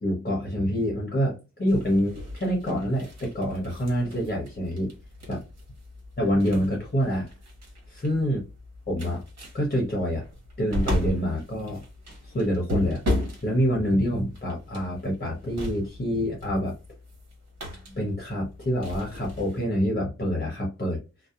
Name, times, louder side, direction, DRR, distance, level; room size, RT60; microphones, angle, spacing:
voice 1, 0.0-4.9 5.3-5.4 6.2-7.3 7.9-8.4 8.9-9.2 9.5-10.2 10.6-11.8 12.3-13.0 13.4-16.7 17.9-21.0, equal, 30° left, -2 dB, 1.0 m, -26 dB
sound 1, 1.7-19.6, left 1 dB, 60° right, 1.2 m, -36 dB
2.7 x 2.2 x 2.4 m, 0.30 s
cardioid pair, 75°, 30 cm